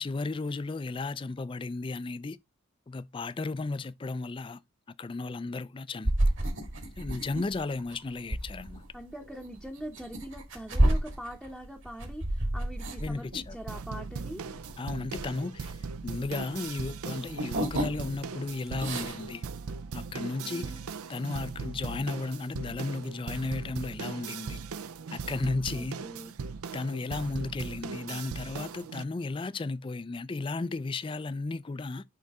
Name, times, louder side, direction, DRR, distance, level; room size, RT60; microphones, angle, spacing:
voice 1, 0.0-2.4 2.9-4.6 5.0-6.1 7.0-8.8 13.0-13.6 14.8-19.4 19.9-20.6 21.1-24.6 25.1-26.0 26.7-32.0, left 3 dB, 20° left, 0.3 m, -34 dB
sound 1, 6.0-16.4 16.7-18.3 18.6-19.3, right 1 dB, 60° right, 1.9 m, -30 dB
voice 2, 8.9-14.4 20.4-20.8 25.7-26.3, equal, ahead, 0.7 m, -42 dB
sound 2, 13.7-29.0, right 5 dB, 80° right, 0.5 m, -39 dB
10.5 x 3.9 x 3.5 m
head